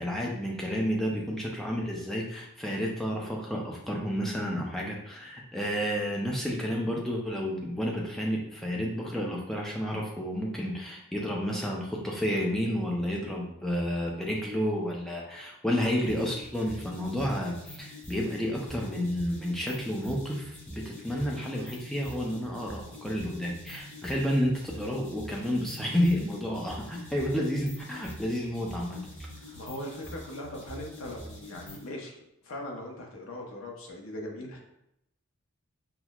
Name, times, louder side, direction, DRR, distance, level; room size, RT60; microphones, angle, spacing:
voice 1, 0.0-29.0, equal, ahead, -2 dB, 0.5 m, -31 dB
sound 1, 16.1-31.9, left 1 dB, 30° left, 1.1 m, -45 dB
voice 2, 29.5-32.1 32.4-34.6, left 1 dB, 70° left, 0 dB, 0.7 m, -40 dB
5.8 x 2.0 x 2.3 m, 0.83 s
head